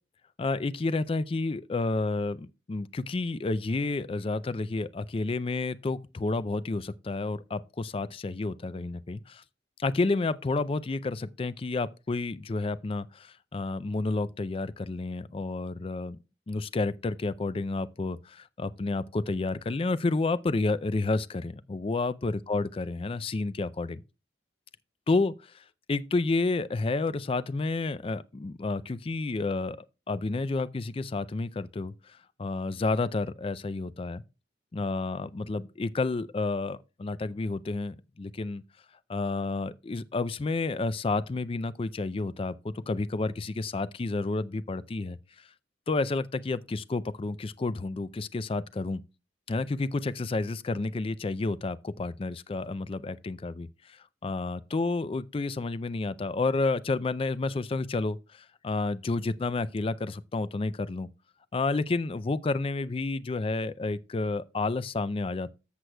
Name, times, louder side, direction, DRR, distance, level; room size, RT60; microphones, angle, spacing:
voice 1, 0.4-9.4 9.8-16.2 16.5-24.0 25.1-29.8 30.1-34.2 34.7-38.6 39.1-45.2 45.9-49.0 49.5-61.1 61.5-65.5, left 3 dB, 30° left, 0.4 m, -30 dB
14.0 x 6.3 x 2.2 m
head